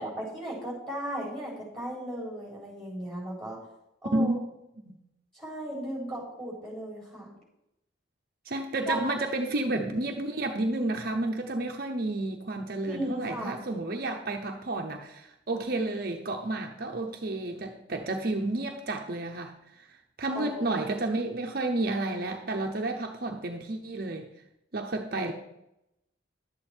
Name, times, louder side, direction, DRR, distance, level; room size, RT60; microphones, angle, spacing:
voice 1, 0.0-3.6 4.0-4.4 5.3-7.3 8.9-9.0 12.8-13.6 20.3-20.9, right 1 dB, ahead, -4 dB, 4.0 m, -36 dB
voice 2, 8.5-24.3 24.7-25.3, right 2 dB, 50° right, 2 dB, 0.8 m, -31 dB
11.0 x 8.4 x 4.4 m, 0.86 s
head